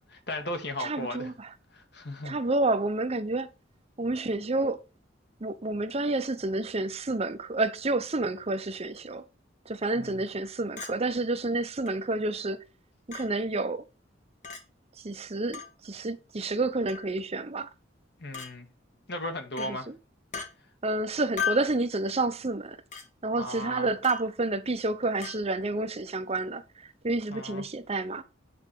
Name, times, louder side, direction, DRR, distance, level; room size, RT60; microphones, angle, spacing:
voice 1, 0.0-1.3 1.7-2.4 10.0-10.3 18.2-18.7 19.1-19.9 23.4-23.9 27.3-27.6, left 1 dB, 65° left, 1.9 m, -36 dB
voice 2, 0.8-1.5 2.2-3.5 4.0-4.8 5.4-9.2 9.7-12.6 13.1-13.8 15.0-17.7 19.6-19.9 20.8-22.8 23.2-26.6 27.0-28.2, right 2 dB, 35° right, 0.8 m, -29 dB
Chink clink, 10.8-10.9 11.9-12.0 13.1-13.3 14.4-14.6 15.5-15.7 16.9-17.1 18.3-18.5 19.6-19.7 20.3-20.5 21.4-21.7 22.9-23.1 24.0-24.3 25.2-25.4, left 7 dB, 45° left, 2.3 m, -34 dB
9.5 x 4.8 x 6.1 m
head